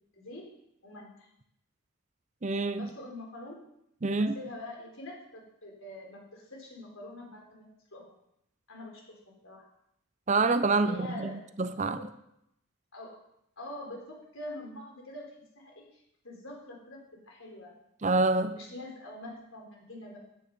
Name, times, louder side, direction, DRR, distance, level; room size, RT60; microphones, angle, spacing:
voice 1, 0.1-0.5 0.8-1.3 2.7-3.6 4.1-7.7 7.9-8.1 8.7-9.2 9.4-9.7 10.6-11.4 12.0-12.1 12.9-13.2 13.6-17.7 18.5-20.2, left 1 dB, 70° left, 0 dB, 3.9 m, -44 dB
voice 2, 2.4-2.9 4.0-4.3 10.3-12.0 18.0-18.6, right 3 dB, 35° right, 11 dB, 0.5 m, -27 dB
14.0 x 9.2 x 5.3 m, 0.79 s
head